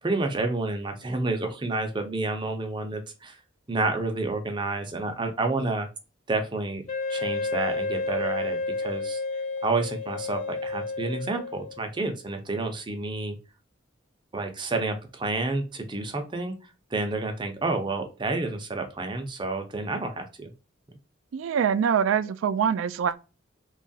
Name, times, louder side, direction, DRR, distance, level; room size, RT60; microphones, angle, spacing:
voice 1, 0.0-3.4 3.7-5.9 6.3-6.8 7.1-9.2 9.6-13.4 14.3-16.5 16.9-20.5, right 3 dB, 25° right, 0.5 m, -29 dB
Wind instrument woodwind instrument, 6.9-11.9, left 3 dB, 40° left, 0.4 m, -31 dB
voice 2, 21.3-23.2, right 7 dB, 75° right, 0.3 m, -24 dB
2.9 x 2.3 x 2.6 m
head